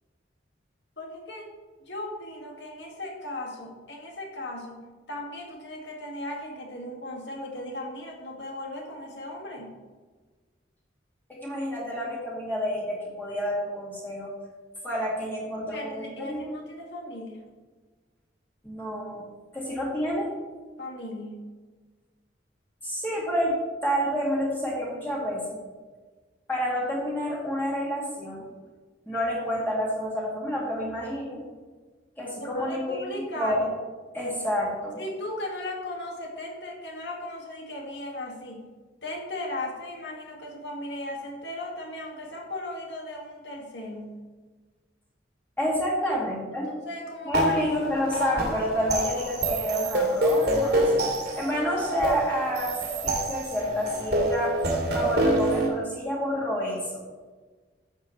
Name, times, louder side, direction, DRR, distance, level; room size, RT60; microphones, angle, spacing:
voice 1, 1.0-1.5 1.8-4.8 5.1-9.7 15.6-17.4 20.8-21.5 32.4-33.7 35.0-38.7 39.0-44.2 46.0-46.2 46.7-47.7, left 1 dB, 65° left, 0 dB, 2.1 m, -37 dB
voice 2, 11.3-14.3 14.8-16.5 18.6-19.2 19.5-20.3 22.8-25.6 26.5-28.5 29.1-31.4 32.2-33.7 34.1-35.0 45.6-46.7 47.2-51.0 51.4-54.6 54.9-57.0, equal, 10° left, -5 dB, 2.2 m, -29 dB
sound 1, 47.3-55.7, right 1 dB, 60° right, 2.2 m, -26 dB
12.0 x 7.9 x 3.2 m, 1.4 s
head